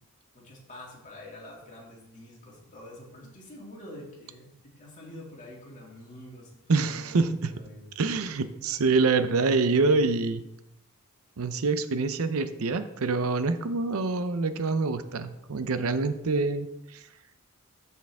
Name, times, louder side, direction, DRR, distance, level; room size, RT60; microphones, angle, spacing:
voice 1, 0.3-7.2 7.5-7.9, left 1 dB, 40° left, -3 dB, 2.4 m, -46 dB
voice 2, 6.7-7.5 8.0-10.4 11.4-17.0, right 3 dB, 85° right, 11 dB, 0.6 m, -26 dB
13.5 x 4.6 x 3.6 m, 0.86 s
head